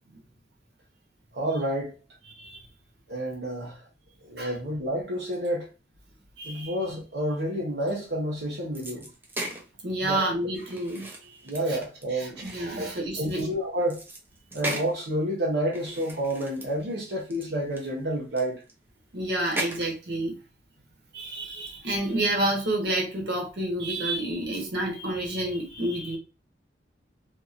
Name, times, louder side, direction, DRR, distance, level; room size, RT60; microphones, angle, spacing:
voice 1, 1.3-2.0 3.1-3.8 4.2-5.7 6.4-9.1 10.0-10.3 11.4-12.5 12.8-14.0 14.5-18.6, right 1 dB, 90° right, 0.8 m, -29 dB
voice 2, 6.4-6.7 9.8-11.1 11.7-11.8 12.1-13.5 19.1-20.3 21.1-26.2, right 1 dB, 65° right, 1.1 m, -29 dB
sound 1, 8.8-9.7 10.5-13.5 13.9-15.0 15.7-17.0 17.3-17.5 17.7-18.7 19.4-20.0, right 1 dB, 10° right, 0.5 m, -37 dB
2.9 x 2.7 x 2.4 m
head